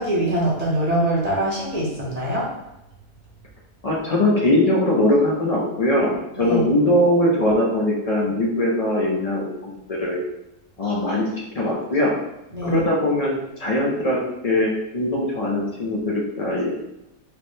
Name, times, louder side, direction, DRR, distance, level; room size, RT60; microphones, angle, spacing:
voice 1, 0.0-2.4 6.4-6.7 12.5-12.8, right 1 dB, 35° right, -6 dB, 0.8 m, -23 dB
voice 2, 3.8-10.2 10.8-12.2 12.6-16.7, left 1 dB, 60° left, -3 dB, 0.3 m, -21 dB
4.8 x 2.1 x 3.1 m, 0.90 s
omnidirectional pair, 1.5 m